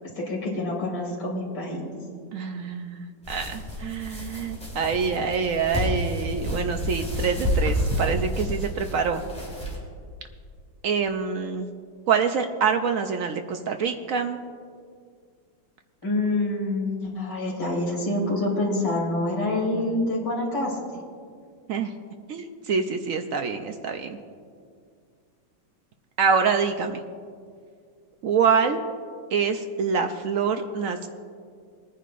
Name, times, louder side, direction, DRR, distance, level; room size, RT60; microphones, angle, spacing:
voice 1, 0.0-1.9 16.0-20.8, left 2 dB, 60° left, -4 dB, 3.4 m, -27 dB
voice 2, 2.3-9.2 10.8-11.7 12.1-14.4 21.7-21.9 22.3-24.2 26.2-27.0 28.2-28.8 29.3-31.1, right 6 dB, 75° right, 6 dB, 0.7 m, -25 dB
sound 1, 3.2-9.7, equal, 5° left, 3.0 m, -29 dB
22.0 x 10.0 x 2.5 m, 2.1 s
omnidirectional pair, 2.0 m